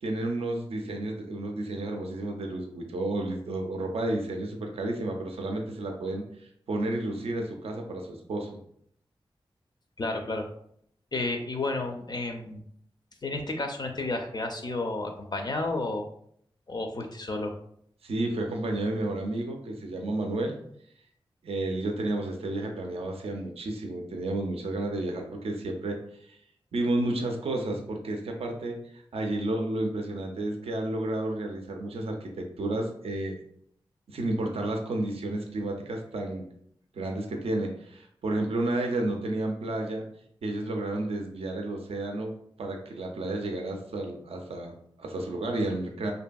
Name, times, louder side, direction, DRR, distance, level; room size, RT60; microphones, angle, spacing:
voice 1, 0.0-8.5 18.0-20.6 21.4-26.4 26.7-33.3 34.1-36.5 36.9-40.1 40.4-46.1, right 2 dB, 75° right, 3 dB, 0.4 m, -31 dB
voice 2, 10.0-10.5 11.1-12.6 13.2-16.0 16.7-17.5, left 2 dB, 45° left, 4 dB, 0.4 m, -31 dB
2.6 x 2.6 x 2.2 m, 0.68 s
cardioid pair, 40°, 10 cm